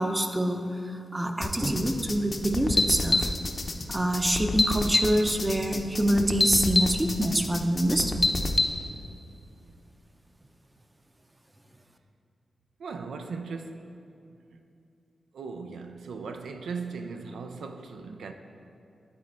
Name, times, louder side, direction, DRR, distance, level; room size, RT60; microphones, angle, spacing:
voice 1, 0.0-3.3 3.9-8.3, right 1 dB, 20° right, 5 dB, 0.6 m, -26 dB
sound 1, 1.4-8.7, left 2 dB, 40° left, 0.6 m, -27 dB
voice 2, 12.8-13.9 14.5-14.6 15.3-18.3, right 4 dB, 80° right, 6 dB, 0.4 m, -38 dB
12.0 x 4.2 x 4.0 m, 2.7 s
cardioid pair, 65°, 0 cm